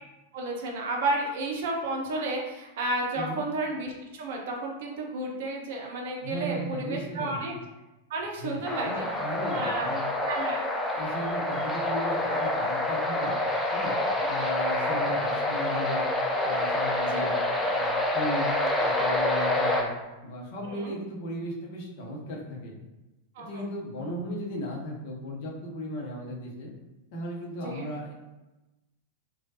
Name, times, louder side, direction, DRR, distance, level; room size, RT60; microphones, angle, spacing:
voice 1, 0.3-7.5 8.1-9.1 9.5-9.9 10.3-10.6 14.1-14.3 17.0-17.3 20.6-20.9 23.3-23.6 27.6-27.9, right 2 dB, 55° right, 0 dB, 0.5 m, -32 dB
voice 2, 6.2-7.4 8.4-10.1 10.9-13.4 13.7-14.0 14.3-16.1 16.4-19.9 20.2-22.7 23.4-26.7 27.1-28.1, equal, 50° left, -2 dB, 0.7 m, -36 dB
sound 1, 8.6-19.8, left 1 dB, 5° left, 0.4 m, -27 dB
3.1 x 2.3 x 2.7 m, 1.0 s
figure-of-eight pair, 90°, 0 cm